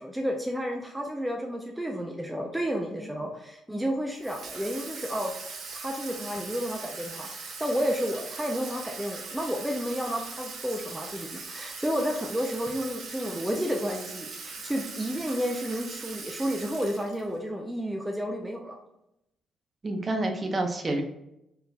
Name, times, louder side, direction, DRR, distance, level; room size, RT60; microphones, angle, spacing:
voice 1, 0.0-5.3 5.7-18.8, equal, 5° right, 1 dB, 0.6 m, -31 dB
Water tap faucet / Sink (filling or washing), 4.2-17.4, right 4 dB, 65° right, 1.0 m, -40 dB
voice 2, 19.8-21.0, right 2 dB, 30° right, 3 dB, 0.9 m, -29 dB
4.5 x 3.8 x 2.3 m, 0.84 s
cardioid pair, 90°, 0 cm